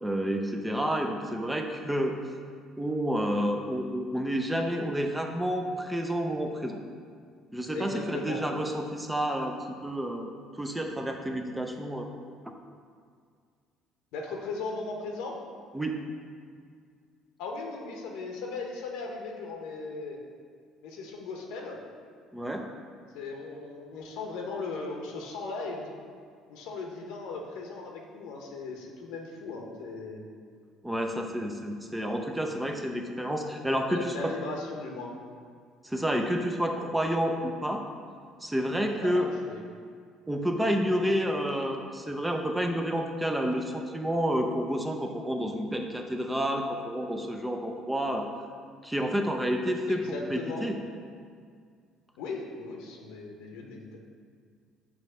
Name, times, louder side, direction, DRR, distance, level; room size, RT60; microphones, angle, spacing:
voice 1, 0.0-2.1 2.8-6.8 7.5-9.6 9.8-10.3 10.6-12.1 15.7-16.0 22.3-22.7 30.8-34.3 35.8-37.8 38.4-39.3 40.3-48.3 48.8-50.8, equal, 5° right, 3 dB, 0.4 m, -29 dB
voice 2, 7.7-8.4 14.1-15.4 17.4-20.2 20.8-21.8 23.1-25.9 26.5-30.2 32.5-32.6 33.9-35.1 39.0-39.6 49.9-50.7 52.2-54.0, left 3 dB, 90° left, 1 dB, 0.8 m, -37 dB
6.0 x 3.0 x 5.5 m, 2.1 s
cardioid pair, 135°, 0 cm